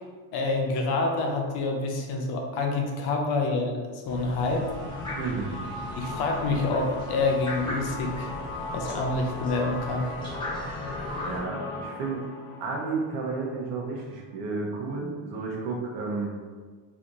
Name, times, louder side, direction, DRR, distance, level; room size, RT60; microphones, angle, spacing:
voice 1, 0.3-4.6 6.0-8.3 8.7-10.1, left 3 dB, 50° left, 1 dB, 0.6 m, -27 dB
sound 1, 4.0-11.4, equal, 10° left, 1.0 m, -38 dB
sound 2, 4.4-14.1, left 2 dB, 80° left, 1.2 m, -38 dB
voice 2, 5.2-5.6 11.3-12.3 12.6-16.3, right 4 dB, 65° right, -1 dB, 0.9 m, -32 dB
3.4 x 3.0 x 2.5 m, 1.5 s
cardioid pair, 155°, 49 cm